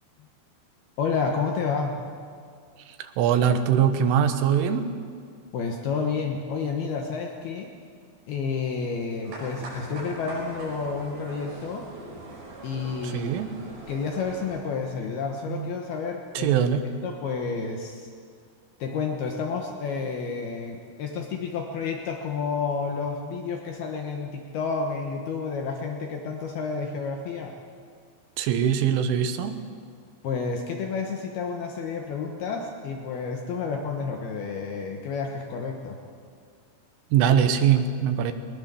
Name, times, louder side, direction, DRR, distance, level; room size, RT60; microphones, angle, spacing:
voice 1, 1.0-1.9 5.5-7.7 8.3-11.9 12.6-13.3 13.6-16.6 16.9-18.1 18.8-27.5 30.2-36.0, left 5 dB, 65° left, 2 dB, 2.8 m, -30 dB
voice 2, 2.9-4.9 13.0-13.5 15.5-15.7 16.4-16.8 28.4-29.6 37.1-38.3, right 8 dB, 90° right, 8 dB, 3.7 m, -22 dB
sound 1, 9.2-14.6, right 2 dB, 60° right, 7.5 m, -41 dB
21.5 x 20.5 x 7.0 m, 2.1 s
omnidirectional pair, 5.5 m